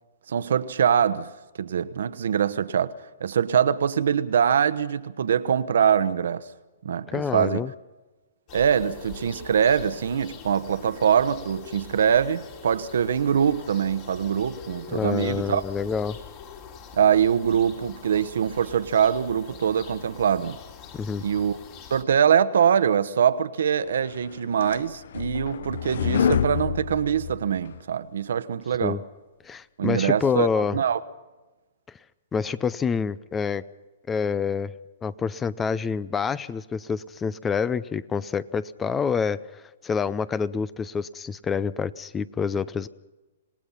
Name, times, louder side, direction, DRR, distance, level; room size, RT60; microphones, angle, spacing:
voice 1, 0.3-1.3 1.6-2.9 3.2-6.4 6.8-7.7 8.5-15.6 16.9-20.6 21.2-21.6 21.9-29.0 29.8-31.0, right 8 dB, 75° right, 1.1 m, -23 dB
voice 2, 7.1-7.7 14.9-16.2 20.9-21.2 28.8-29.0 29.4-30.8 32.3-33.6 34.1-34.7 35.0-42.9, left 6 dB, 15° left, 0.6 m, -27 dB
sound 1, 8.5-22.0, left 6 dB, 40° left, 3.8 m, -44 dB
sound 2, 24.1-27.8, left 8 dB, 70° left, 0.8 m, -27 dB
27.0 x 18.5 x 5.8 m
hypercardioid pair, 135°, 0 cm